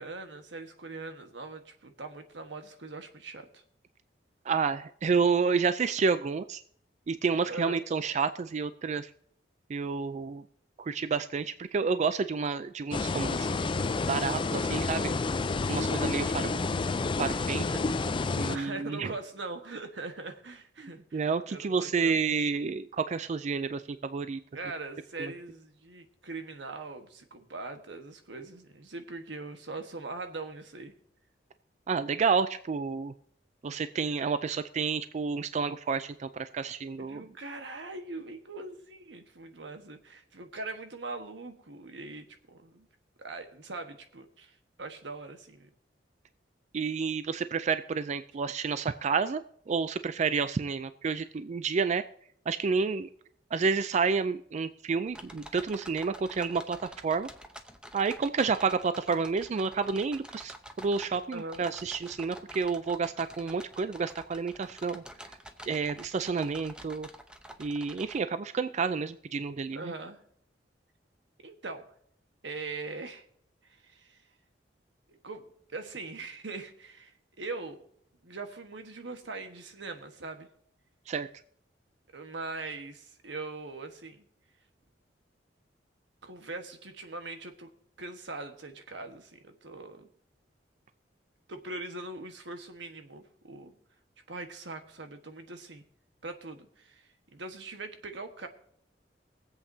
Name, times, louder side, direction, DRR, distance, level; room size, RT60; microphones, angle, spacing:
voice 1, 0.0-3.6 7.4-7.8 18.5-21.2 21.5-22.2 24.5-30.9 37.0-42.9 43.2-45.7 61.3-61.6 69.7-70.2 71.4-71.9 72.4-73.2 73.6-74.2 75.1-77.8 78.2-80.5 82.1-84.2 86.2-87.7 88.0-90.1 91.5-93.7 94.3-95.8 96.2-98.5, right 3 dB, 85° right, 6 dB, 1.3 m, -41 dB
voice 2, 4.4-6.6 7.1-9.1 9.7-10.4 10.8-13.6 14.1-15.1 15.7-16.8 17.2-17.8 18.3-19.1 20.8-24.4 25.2-25.3 31.9-33.1 33.6-37.3 46.7-49.4 49.7-52.0 52.5-53.1 53.5-57.3 57.9-65.0 65.7-67.1 67.6-69.9 81.1-81.3, right 5 dB, 40° right, 12 dB, 0.4 m, -30 dB
sound 1, 12.9-18.6, left 3 dB, 30° left, 0.4 m, -29 dB
sound 2, 55.1-68.2, equal, 5° right, 0.8 m, -49 dB
23.0 x 8.0 x 2.7 m, 0.64 s
head